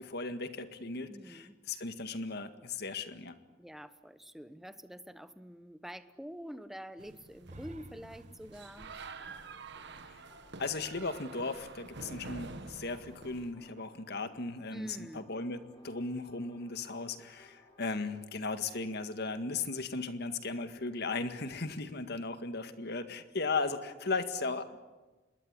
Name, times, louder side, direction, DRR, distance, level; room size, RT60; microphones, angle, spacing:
voice 1, 0.0-3.4 10.1-10.2 10.6-24.8, left 3 dB, 55° left, 9 dB, 1.9 m, -37 dB
voice 2, 1.1-1.5 3.6-8.9 14.7-15.3, equal, ahead, 11 dB, 1.1 m, -47 dB
sound 1, 7.0-13.5, right 3 dB, 55° right, 1.5 m, -48 dB
sound 2, 7.4-11.3, right 1 dB, 35° right, 1.4 m, -54 dB
sound 3, 9.2-17.9, left 2 dB, 20° left, 3.5 m, -62 dB
26.0 x 21.0 x 9.9 m, 1.2 s
head